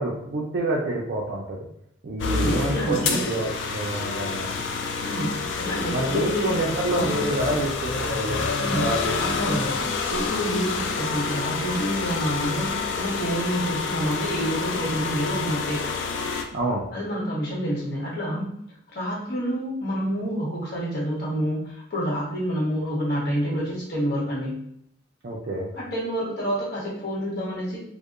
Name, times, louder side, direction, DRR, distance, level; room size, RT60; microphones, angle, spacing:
voice 1, 0.0-1.7 2.0-4.5 5.9-9.2 9.5-9.6 16.5-16.8 25.2-25.7, right 1 dB, 55° right, -4 dB, 0.4 m, -28 dB
sound 1, 2.2-16.4, left 4 dB, 70° left, 0.3 m, -28 dB
voice 2, 2.3-3.2 5.0-7.2 8.6-8.8 9.2-15.8 16.9-18.5 18.9-24.5 25.7-27.8, equal, 55° left, -6 dB, 1.0 m, -28 dB
2.7 x 2.1 x 2.4 m, 0.74 s
head